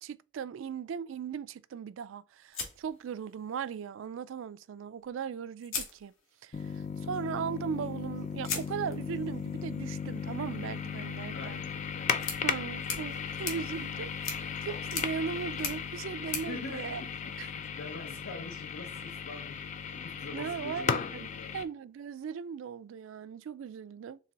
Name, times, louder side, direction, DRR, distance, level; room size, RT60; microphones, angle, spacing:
voice 1, 0.0-6.1 6.4-11.6 12.4-17.0 17.4-17.5 20.3-21.3 21.5-24.2, right 7 dB, 80° right, 0.3 m, -38 dB
sound 1, 2.5-3.7 5.0-5.1 5.6-6.6 8.4-17.6, left 5 dB, 90° left, 1.1 m, -42 dB
sound 2, 6.5-21.6, left 6 dB, 35° left, 0.3 m, -36 dB
voice 2, 11.3-12.1 13.5-13.8 16.5-21.6, left 3 dB, 70° left, 0.8 m, -45 dB
4.7 x 3.3 x 2.8 m
head